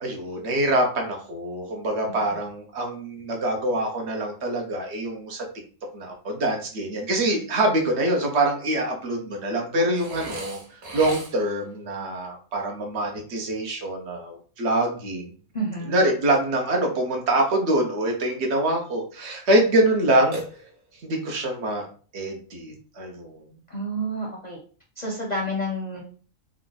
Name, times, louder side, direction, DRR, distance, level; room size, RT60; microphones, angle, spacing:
voice 1, 0.0-5.5 5.9-10.6 10.9-15.3 15.9-20.4 21.0-21.9 22.1-23.4, right 1 dB, 55° right, 2 dB, 1.1 m, -25 dB
Burping eructation, 9.9-11.6 20.3-21.1, right 1 dB, 85° right, 1.4 m, -37 dB
voice 2, 15.5-15.9 23.7-24.6 25.0-26.0, right 1 dB, 40° left, -3 dB, 0.7 m, -29 dB
3.5 x 2.3 x 3.9 m, 0.41 s
omnidirectional pair, 1.5 m